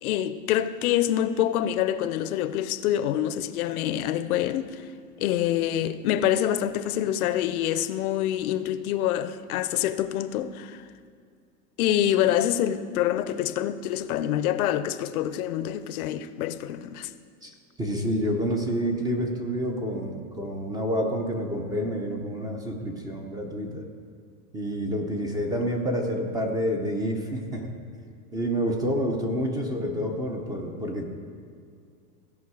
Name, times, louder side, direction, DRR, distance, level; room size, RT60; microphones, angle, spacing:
voice 1, 0.0-4.8 5.2-10.8 11.8-17.1, left 11 dB, 65° left, 0.7 m, -26 dB
voice 2, 17.8-23.9 24.5-27.8 28.3-31.1, equal, 10° right, 0.5 m, -28 dB
16.0 x 5.4 x 4.7 m
supercardioid pair, 145°, 46 cm